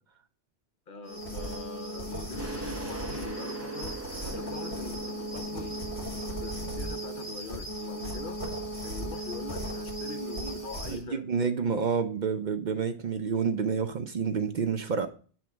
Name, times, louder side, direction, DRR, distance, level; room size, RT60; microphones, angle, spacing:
voice 1, 0.9-5.8 6.1-8.4 8.8-11.2, left 4 dB, 55° left, 0.8 m, -43 dB
sound 1, 1.0-11.0, right 1 dB, 75° left, 3.1 m, -36 dB
sound 2, 2.4-7.8, right 3 dB, 15° right, 0.7 m, -42 dB
voice 2, 10.8-15.1, right 6 dB, 55° right, 0.6 m, -29 dB
8.6 x 3.4 x 6.0 m
omnidirectional pair, 1.1 m